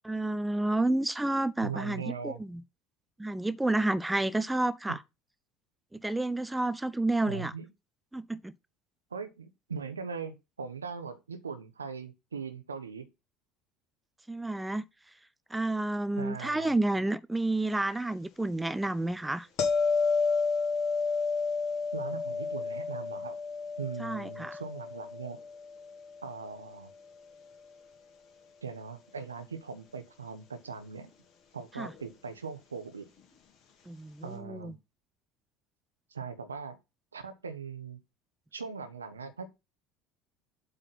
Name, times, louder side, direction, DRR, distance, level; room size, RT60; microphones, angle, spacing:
voice 1, 0.0-2.6 3.2-5.0 5.9-7.5 8.1-8.5 14.3-14.8 15.5-19.5 24.0-24.6 31.8-31.9 33.9-34.7, right 2 dB, 10° right, 0.5 m, -30 dB
voice 2, 1.6-2.4 7.3-7.7 9.1-13.1 16.2-16.8 21.9-23.4 23.8-25.4 26.2-26.9 28.6-31.1 31.5-33.1 34.2-34.8 36.1-36.8 37.1-38.0 38.5-39.5, right 5 dB, 80° right, 0.9 m, -40 dB
sound 1, 19.6-26.6 31.8-32.0, left 4 dB, 45° left, 2.7 m, -31 dB
7.9 x 3.8 x 5.9 m
figure-of-eight pair, 65°, 0 cm